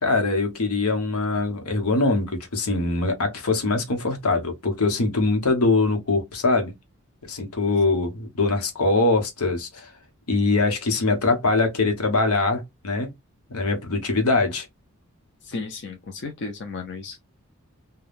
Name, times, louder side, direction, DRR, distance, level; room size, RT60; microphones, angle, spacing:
voice 1, 0.0-6.7 7.2-9.9 10.3-13.1 13.5-14.7, left 3 dB, 85° left, 0.9 m, -23 dB
voice 2, 15.4-17.2, left 3 dB, 50° left, 0.5 m, -34 dB
3.4 x 2.2 x 2.4 m
head